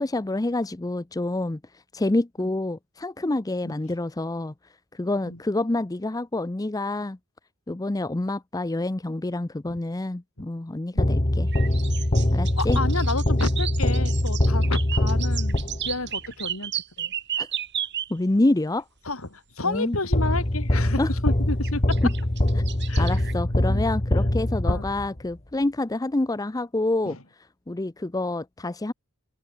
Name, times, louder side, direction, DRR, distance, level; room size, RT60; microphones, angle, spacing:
voice 1, 0.0-1.6 1.9-4.5 4.9-7.2 7.7-11.5 12.3-12.8 17.4-17.5 18.1-18.8 19.6-20.0 21.0-21.1 23.0-27.2 27.7-28.9, left 2 dB, 15° left, 0.6 m, -27 dB
sound 1, 11.0-16.1 20.1-25.3, left 1 dB, 30° left, 1.6 m, -23 dB
sound 2, 11.5-18.1 19.8-19.9 21.6-23.3, right 10 dB, 55° right, 4.0 m, -33 dB
voice 2, 12.6-16.7 17.0-17.1 19.0-22.0 22.9-23.2 23.7-23.8 24.7-24.9 27.1-27.2, left 2 dB, 75° left, 5.5 m, -31 dB
open air
head